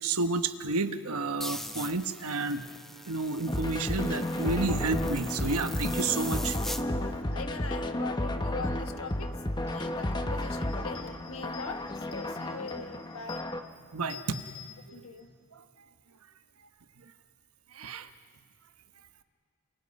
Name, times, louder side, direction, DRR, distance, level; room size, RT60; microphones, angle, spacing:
voice 1, 0.0-2.6 3.1-6.6 13.9-14.4 14.9-15.0 15.5-15.6 17.7-18.1, right 3 dB, 75° right, 9 dB, 1.2 m, -31 dB
sound 1, 1.4-6.8, equal, ahead, 0.8 m, -41 dB
sound 2, 3.5-13.6, left 1 dB, 20° left, 1.1 m, -32 dB
voice 2, 7.0-13.4 14.9-15.3, left 4 dB, 65° left, 7 dB, 1.4 m, -42 dB
sound 3, 9.0-9.2 9.5-15.4, left 8 dB, 45° left, 4.2 m, -51 dB
30.0 x 28.0 x 5.4 m, 2.1 s
head